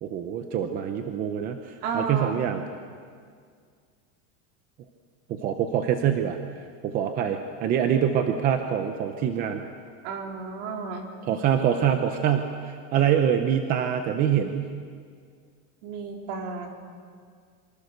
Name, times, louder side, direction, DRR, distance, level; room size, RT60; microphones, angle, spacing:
voice 1, 0.0-2.6 5.3-6.4 6.8-9.6 11.3-14.8, right 9 dB, 20° right, 6 dB, 0.7 m, -25 dB
voice 2, 1.8-2.4 10.0-11.1 15.8-16.7, right 5 dB, 45° right, 2 dB, 3.6 m, -32 dB
27.5 x 25.0 x 6.6 m, 2.1 s
supercardioid pair, 180°, 44 cm